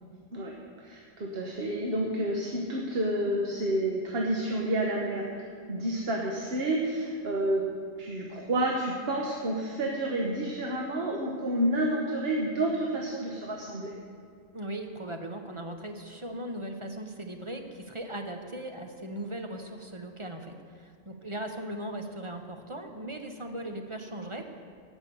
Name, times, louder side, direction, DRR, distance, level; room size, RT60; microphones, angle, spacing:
voice 1, 0.3-5.4 5.7-7.7 8.0-14.0, right 1 dB, 50° right, -1 dB, 1.3 m, -30 dB
voice 2, 14.5-24.5, right 1 dB, 30° right, 4 dB, 0.7 m, -38 dB
16.5 x 6.1 x 6.9 m, 2.1 s
omnidirectional pair, 1.3 m